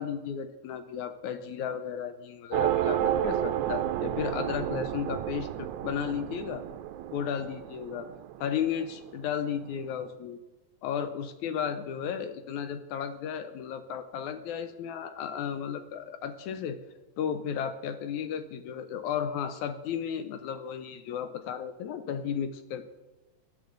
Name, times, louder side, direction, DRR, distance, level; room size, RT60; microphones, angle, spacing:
voice 1, 0.0-6.7 7.1-8.1 8.4-10.4 10.8-16.8 17.2-22.9, left 8 dB, 75° left, 10 dB, 1.8 m, -34 dB
sound 1, 2.5-9.3, right 11 dB, 85° right, 1.7 m, -31 dB
18.0 x 12.0 x 3.9 m, 1.1 s
omnidirectional pair, 4.0 m